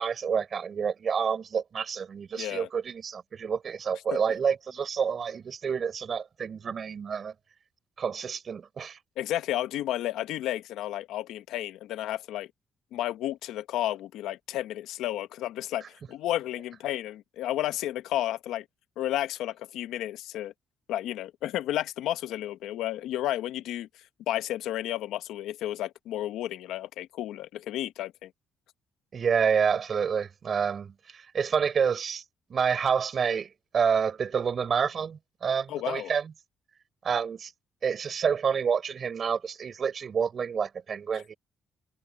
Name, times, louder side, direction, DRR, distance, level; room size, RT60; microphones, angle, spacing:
voice 1, 0.0-7.3 8.0-9.0 29.1-32.2 32.5-36.3 37.0-37.5 37.8-41.3, right 6 dB, 50° right, 4.9 m, -28 dB
voice 2, 2.3-2.7 4.1-4.2 9.2-12.5 12.9-18.6 19.0-20.5 20.9-23.9 24.3-28.3 35.7-36.1, left 13 dB, 90° left, 1.0 m, -32 dB
open air
cardioid pair, 95°, 0 cm